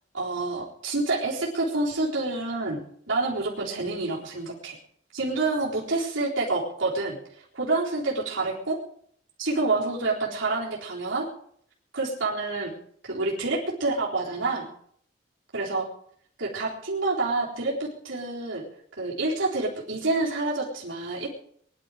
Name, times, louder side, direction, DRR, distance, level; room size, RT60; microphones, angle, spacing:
voice 1, 0.1-2.8 3.1-4.8 5.1-8.8 9.4-11.3 11.9-12.7 13.0-14.7 15.5-15.9 16.4-18.6 18.9-21.3, right 3 dB, 90° right, -5 dB, 3.9 m, -28 dB
21.5 x 11.5 x 5.0 m, 0.65 s
head